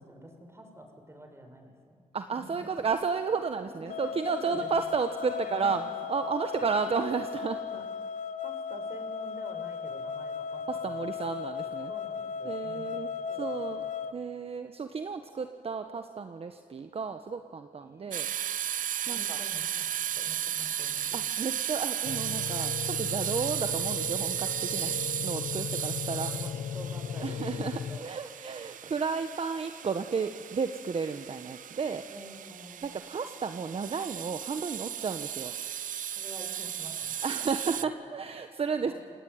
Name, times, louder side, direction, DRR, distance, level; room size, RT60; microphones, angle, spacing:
voice 1, 0.0-2.1 2.3-2.4 3.8-4.7 5.2-5.8 7.6-7.8 8.4-11.3 11.9-14.1 17.8-18.3 19.0-21.2 24.8-25.1 25.9-28.1 32.1-33.1 36.2-37.2 38.8-38.9, right 1 dB, 20° right, 4 dB, 6.3 m, -48 dB
voice 2, 2.1-5.8 6.1-7.6 10.7-11.9 12.4-13.8 14.1-18.3 19.1-19.4 21.1-24.9 25.2-26.3 27.2-32.0 32.8-35.5 37.2-38.9, right 5 dB, 45° right, 8 dB, 1.3 m, -32 dB
sound 1, 3.9-14.1, left 6 dB, 65° left, 1.2 m, -36 dB
sound 2, 18.1-37.8, right 10 dB, 75° right, 0.8 m, -35 dB
sound 3, 22.0-28.0, left 8 dB, 85° left, 1.1 m, -37 dB
28.5 x 18.5 x 9.5 m, 2.1 s
cardioid pair, 75°, 14 cm